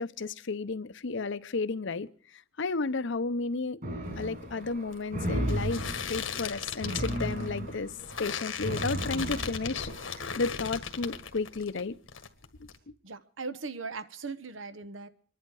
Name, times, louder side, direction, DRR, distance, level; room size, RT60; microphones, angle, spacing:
voice 1, 0.0-2.1 2.6-3.8 4.1-7.9 8.2-12.0, left 4 dB, 65° left, 0.8 m, -33 dB
sound 1, 3.8-10.3, right 1 dB, 50° right, 6.1 m, -35 dB
sound 2, 4.1-11.8 12.1-12.8, left 6 dB, 85° left, 1.7 m, -38 dB
voice 2, 13.0-15.1, right 4 dB, 85° right, 1.1 m, -39 dB
26.0 x 11.0 x 4.7 m
head